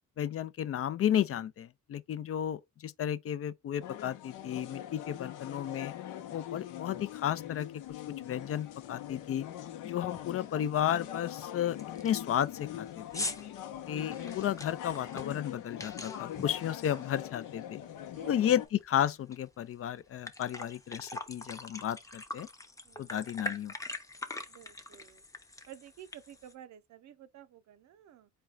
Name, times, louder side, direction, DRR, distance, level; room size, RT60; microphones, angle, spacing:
voice 1, 0.2-5.9 6.3-7.7 8.1-9.5 9.8-13.3 13.9-17.8 18.3-22.5 23.0-23.7, left 10 dB, 50° left, 0.5 m, -33 dB
sound 1, 3.8-18.7, left 11 dB, 85° left, 0.8 m, -42 dB
sound 2, 8.4-8.5 9.0-9.3 9.5-9.6 10.0-10.4 10.8-10.9 11.4-11.5 11.8-17.7 18.1-19.4 19.7-19.8 20.1-26.5, left 1 dB, 10° left, 0.7 m, -43 dB
voice 2, 22.8-23.2 24.5-25.2 25.7-28.3, right 11 dB, 70° right, 0.6 m, -52 dB
4.4 x 2.3 x 3.8 m
cardioid pair, 90°, 30 cm